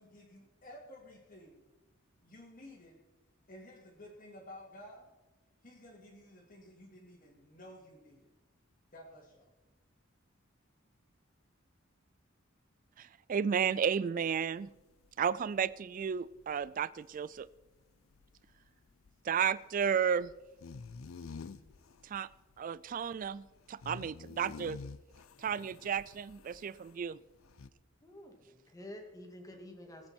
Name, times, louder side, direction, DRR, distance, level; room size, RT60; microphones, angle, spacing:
voice 1, 0.0-1.6 2.2-3.0 3.5-5.1 5.6-8.3 8.9-9.5, left 1 dB, 40° left, -4 dB, 2.3 m, -53 dB
voice 2, 13.0-14.7 15.2-17.5 19.2-20.3 22.0-22.3 22.6-24.8 25.4-27.2, right 7 dB, 40° right, 18 dB, 0.3 m, -33 dB
sound 1, 14.6-27.0 27.3-27.7, left 4 dB, 85° left, 0.5 m, -50 dB
voice 3, 28.0-30.1, left 1 dB, 15° left, 2 dB, 2.2 m, -49 dB
19.5 x 8.7 x 4.4 m, 1.1 s
head